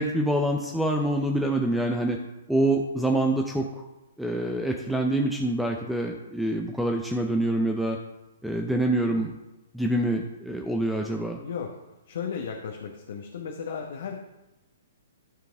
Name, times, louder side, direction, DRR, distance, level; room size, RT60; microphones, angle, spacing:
voice 1, 0.0-2.2 2.5-3.9 4.2-8.0 8.4-9.3 9.7-11.4, right 1 dB, ahead, 2 dB, 0.6 m, -26 dB
voice 2, 11.4-11.8 12.1-14.2, left 6 dB, 65° left, 1 dB, 1.1 m, -35 dB
14.0 x 4.7 x 3.5 m, 0.98 s
hypercardioid pair, 130°, 0 cm